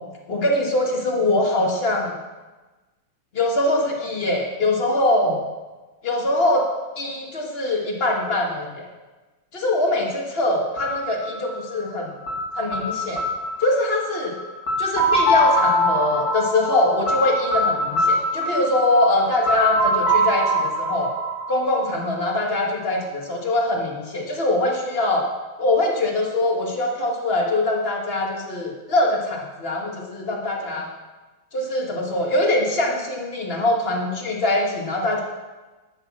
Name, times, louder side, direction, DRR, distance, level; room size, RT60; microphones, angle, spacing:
voice 1, 0.3-2.1 3.3-5.4 6.0-6.7 7.0-8.9 9.5-12.1 12.6-13.2 13.6-14.4 14.8-21.1 21.5-25.3 25.6-30.9 31.5-35.2, left 1 dB, 30° left, 0 dB, 1.9 m, -23 dB
sound 1, 10.8-22.5, equal, 75° left, 3.2 m, -23 dB
11.5 x 6.7 x 7.4 m, 1.2 s
omnidirectional pair, 2.2 m